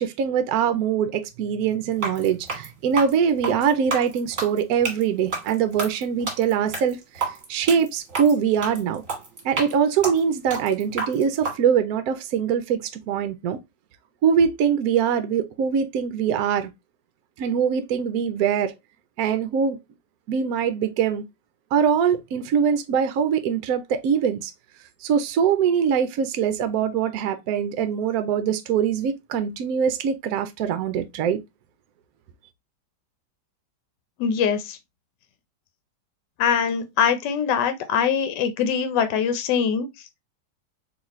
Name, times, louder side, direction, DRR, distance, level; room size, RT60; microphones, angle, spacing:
voice 1, 0.0-9.0 9.4-13.6 14.2-16.7 17.4-18.7 19.2-19.8 20.3-21.2 21.7-24.5 25.0-31.4, right 7 dB, 70° right, 1.0 m, -23 dB
sound 1, 1.9-11.6, right 3 dB, 50° right, 1.6 m, -31 dB
voice 2, 34.2-34.8 36.4-39.9, left 7 dB, 75° left, 1.2 m, -23 dB
4.0 x 3.0 x 3.0 m
omnidirectional pair, 1.9 m